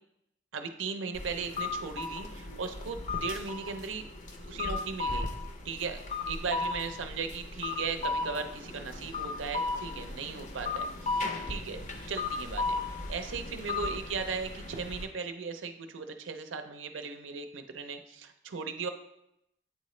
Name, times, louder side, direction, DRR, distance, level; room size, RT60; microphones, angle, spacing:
voice 1, 0.5-4.0 4.5-5.3 5.6-11.8 12.1-12.8 13.1-18.9, right 5 dB, 75° right, 7 dB, 0.6 m, -37 dB
sound 1, 1.1-15.1, left 3 dB, 40° left, 0.7 m, -36 dB
8.7 x 3.8 x 3.1 m, 0.81 s
head